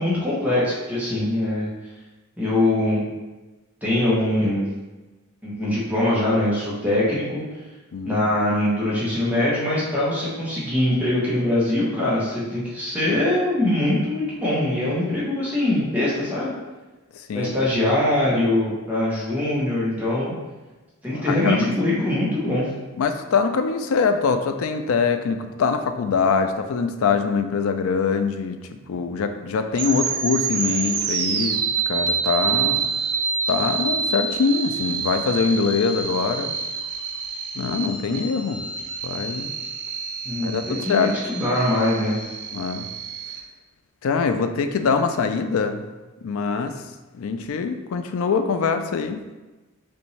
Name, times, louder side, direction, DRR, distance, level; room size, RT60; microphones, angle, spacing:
voice 1, 0.0-1.7 2.4-3.0 3.8-4.7 5.4-7.4 8.0-16.5 17.3-20.3 21.0-22.7 40.2-42.2, left 1 dB, 5° right, -8 dB, 1.1 m, -22 dB
voice 2, 7.9-8.2 17.3-17.5 21.1-21.7 23.0-28.6 28.9-32.8 33.5-36.5 37.6-38.7 39.0-39.5 40.4-41.1 42.5-42.9 44.0-45.8 46.2-46.8 47.1-49.2, left 5 dB, 70° left, 8 dB, 0.4 m, -23 dB
sound 1, 29.7-43.4, right 6 dB, 85° right, 0.5 m, -27 dB
5.3 x 2.7 x 3.2 m, 1.2 s
head